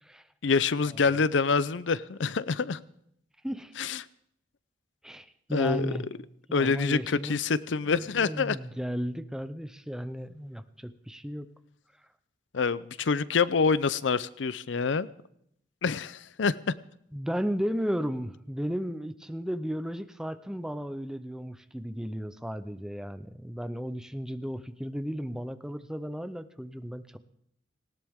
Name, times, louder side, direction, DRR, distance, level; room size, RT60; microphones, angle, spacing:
voice 1, 0.4-2.8 3.8-4.0 5.5-5.9 6.5-8.6 12.5-15.1 15.8-16.7, left 5 dB, 75° left, 0.6 m, -26 dB
voice 2, 5.0-6.1 6.5-7.4 7.9-11.5 17.1-27.2, equal, 5° right, 0.7 m, -34 dB
19.0 x 17.5 x 3.6 m
head